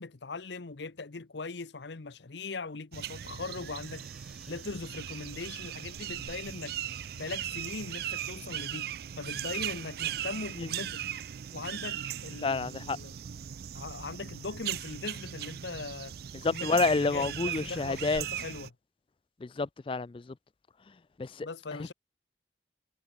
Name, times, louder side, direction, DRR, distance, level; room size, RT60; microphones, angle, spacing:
voice 1, 0.0-4.1 4.5-6.8 7.1-8.9 9.2-11.1 11.5-13.1 13.7-16.1 16.4-18.7 21.4-21.9, left 3 dB, 70° left, 0.9 m, -40 dB
sound 1, 2.9-18.7, right 10 dB, 55° right, 0.4 m, -38 dB
sound 2, 3.6-7.8, right 1 dB, 5° right, 3.4 m, -59 dB
sound 3, 4.5-13.4, right 1 dB, 85° right, 1.6 m, -59 dB
voice 2, 12.4-13.0 16.3-18.3 19.4-20.4 20.9-21.5, left 3 dB, 30° left, 0.3 m, -29 dB
head